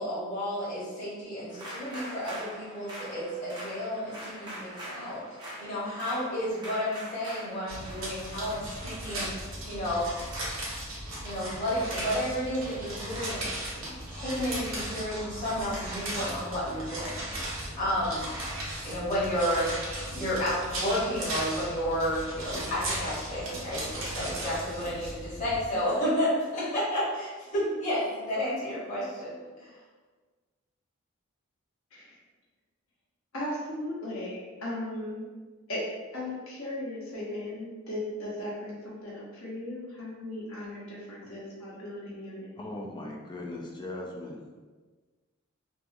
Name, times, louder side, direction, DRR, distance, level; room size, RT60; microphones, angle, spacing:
voice 1, 0.0-5.2 5.6-10.1 11.2-13.5 13.7-18.3 18.8-29.7, equal, 35° left, -9 dB, 0.9 m, -31 dB
sound 1, 1.5-9.9, right 1 dB, 20° right, 0.6 m, -43 dB
sound 2, 7.7-25.7, right 1 dB, 70° right, 0.8 m, -37 dB
voice 2, 33.3-35.3 35.7-35.8 36.1-42.5, left 1 dB, 75° left, -6 dB, 0.9 m, -37 dB
voice 3, 42.6-44.4, left 2 dB, 20° left, -1 dB, 0.3 m, -39 dB
2.6 x 2.3 x 2.5 m, 1.4 s
head